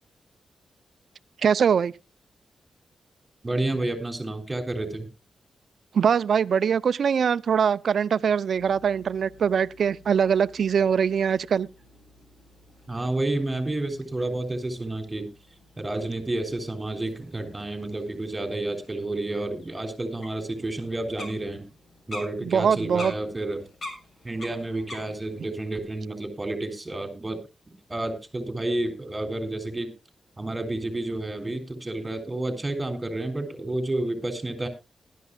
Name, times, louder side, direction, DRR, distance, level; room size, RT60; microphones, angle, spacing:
voice 1, 1.4-1.9 5.9-11.7 22.4-23.1, right 7 dB, 65° right, 0.5 m, -22 dB
voice 2, 3.4-5.1 12.9-15.3 15.8-21.7 22.1-23.7 24.2-27.4 27.9-29.9 30.4-34.7, right 2 dB, 15° right, 3.5 m, -30 dB
sound 1, 8.5-25.5, left 1 dB, 45° left, 6.6 m, -47 dB
19.5 x 12.0 x 2.4 m
wide cardioid pair, 115°, 0 cm